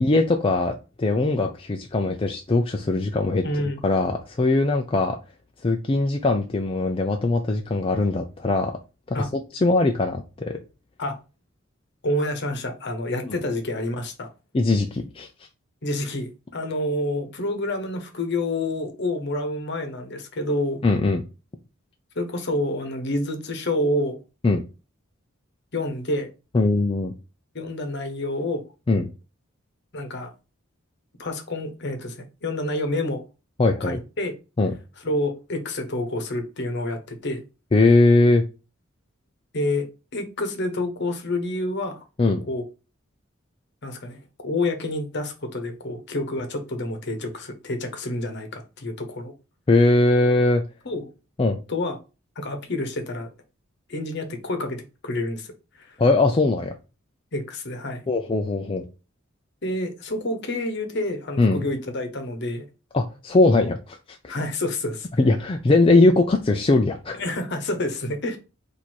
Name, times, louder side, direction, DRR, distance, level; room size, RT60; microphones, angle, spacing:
voice 1, 0.0-5.2 5.6-8.7 9.1-10.6 14.5-15.3 20.8-21.2 24.4-24.6 26.5-27.1 28.9-29.1 33.6-34.0 34.6-34.7 37.7-38.4 42.2-42.4 49.7-50.6 51.4-51.6 56.0-56.7 58.1-58.8 61.4-61.6 62.9-64.0 65.2-67.2, left 2 dB, 25° left, 0.4 m, -20 dB
voice 2, 3.4-3.8 9.1-9.3 11.0-11.2 12.0-14.3 15.8-20.8 22.2-24.2 25.7-26.3 27.5-28.6 29.9-30.3 31.2-33.2 33.8-34.3 35.0-37.4 39.5-42.0 42.5-42.6 43.8-44.2 44.4-49.3 50.8-51.1 51.7-52.0 52.4-53.3 53.9-56.0 57.3-58.0 59.6-62.6 64.3-65.1 67.2-68.4, left 1 dB, 55° left, 1.0 m, -28 dB
4.5 x 2.7 x 4.4 m
head